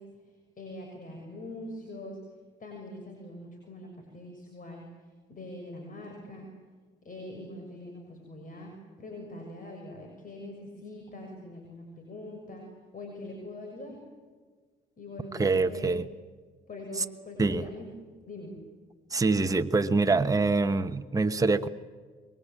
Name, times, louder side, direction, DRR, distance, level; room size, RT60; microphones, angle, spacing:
voice 1, 0.0-2.2 2.6-6.5 7.0-12.6 12.9-14.0 15.0-16.0 16.7-17.9 18.2-18.5, left 1 dB, 45° left, 2 dB, 6.5 m, -43 dB
voice 2, 15.4-16.0 17.0-17.1 17.4-17.6 19.1-21.7, right 3 dB, 15° right, 7 dB, 1.1 m, -25 dB
26.5 x 23.0 x 8.9 m, 1.5 s
cardioid pair, 90°, 20 cm